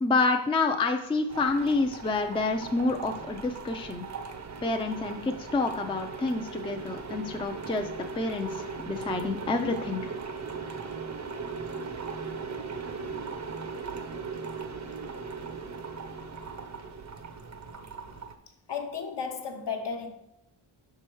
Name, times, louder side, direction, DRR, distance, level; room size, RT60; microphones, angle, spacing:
voice 1, 0.0-4.0 4.6-7.9 8.2-10.1, left 3 dB, 10° left, 0.4 m, -28 dB
sound 1, 1.3-18.3, right 5 dB, 35° right, 0.6 m, -38 dB
voice 2, 18.7-20.1, left 6 dB, 60° left, 1.0 m, -33 dB
5.4 x 4.8 x 4.5 m
wide cardioid pair, 95°, 48 cm